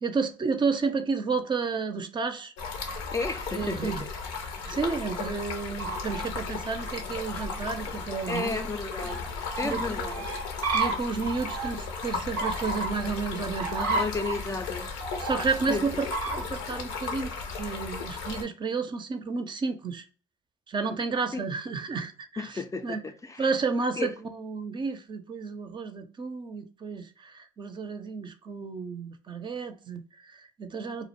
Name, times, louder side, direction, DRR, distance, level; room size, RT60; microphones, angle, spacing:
voice 1, 0.0-2.5 3.5-4.1 4.7-8.6 9.7-10.1 10.7-14.0 15.2-20.1 20.7-23.0 23.4-31.1, right 4 dB, 35° right, 0.5 m, -31 dB
Stream, 2.6-18.4, left 4 dB, 85° left, 0.5 m, -36 dB
voice 2, 3.1-4.1 8.3-9.2 9.6-10.4 13.9-15.0 15.7-16.0 21.3-21.5 22.4-23.5 24.0-24.1, left 3 dB, 25° left, 0.4 m, -33 dB
sound 1, 5.7-6.3 6.6-11.9 12.3-13.1 13.5-14.4 15.0-15.8 16.1-16.7, right 3 dB, 90° right, 0.6 m, -32 dB
2.4 x 2.1 x 2.9 m
hypercardioid pair, 60°, 13 cm